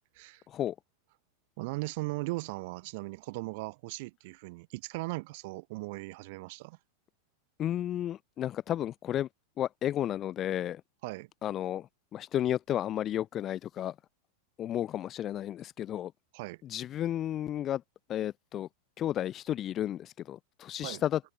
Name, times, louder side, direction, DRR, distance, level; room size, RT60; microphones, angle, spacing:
voice 1, 1.6-6.8 11.0-11.3 16.3-16.6 20.8-21.0, right 24 dB, 50° right, 4.3 m, -38 dB
voice 2, 7.6-9.3 9.6-10.8 11.4-14.0 14.6-16.1 16.6-17.8 18.1-18.7 19.0-21.2, left 11 dB, 30° left, 7.1 m, -32 dB
open air
figure-of-eight pair, 90°, 0 cm